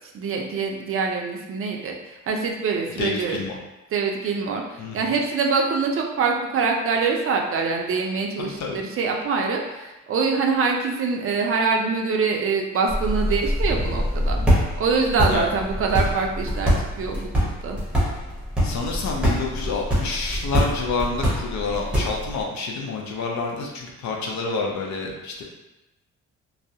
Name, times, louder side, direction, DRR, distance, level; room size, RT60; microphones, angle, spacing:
voice 1, 0.1-3.4 3.9-17.8, right 4 dB, 45° right, 1 dB, 0.4 m, -24 dB
voice 2, 3.0-3.5 4.8-5.0 8.4-8.8 15.3-15.5 18.6-25.4, left 4 dB, 65° left, 0 dB, 0.6 m, -28 dB
sound 1, 12.9-22.4, equal, 5° right, 0.8 m, -24 dB
2.3 x 2.0 x 2.7 m, 0.99 s
cardioid pair, 90°, 30 cm